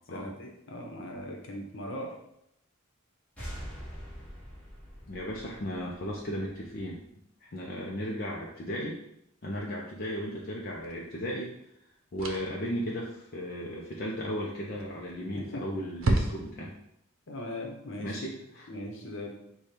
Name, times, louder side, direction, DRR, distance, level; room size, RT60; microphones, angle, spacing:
voice 1, 0.1-2.1 15.3-15.6 17.3-18.2 18.7-19.4, left 1 dB, 65° left, 1 dB, 0.9 m, -39 dB
sound 1, 3.4-6.8, equal, 10° left, 1.6 m, -44 dB
voice 2, 5.1-7.0 7.4-9.0 9.4-11.5 12.1-16.7 18.0-18.7, equal, 50° left, -3 dB, 0.6 m, -35 dB
sound 2, 10.8-11.0 12.2-12.7 14.7-15.2 15.5-15.6 16.0-16.8, right 2 dB, 85° right, 0.6 m, -29 dB
5.0 x 2.3 x 4.3 m, 0.78 s
head